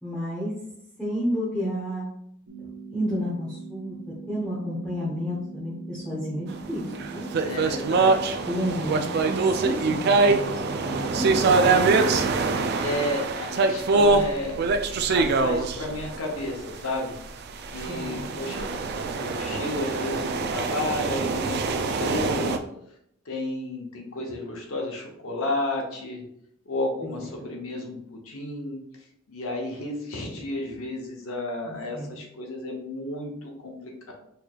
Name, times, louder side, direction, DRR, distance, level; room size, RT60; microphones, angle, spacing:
voice 1, 0.0-0.5 1.0-2.1 2.6-7.3 8.4-11.5 17.9-18.6 27.0-27.1 31.7-32.1, equal, 5° left, -10 dB, 0.9 m, -31 dB
sound 1, 2.5-12.5, right 4 dB, 75° right, 1.1 m, -41 dB
sound 2, 6.9-16.6 17.5-22.6, right 3 dB, 50° right, 0.3 m, -24 dB
voice 2, 7.4-8.2 12.8-14.6 15.1-17.1 17.7-18.8 19.1-22.6 23.2-26.2 26.7-28.8 29.3-34.1, left 1 dB, 85° left, 0 dB, 0.9 m, -32 dB
4.4 x 3.2 x 2.4 m, 0.74 s
head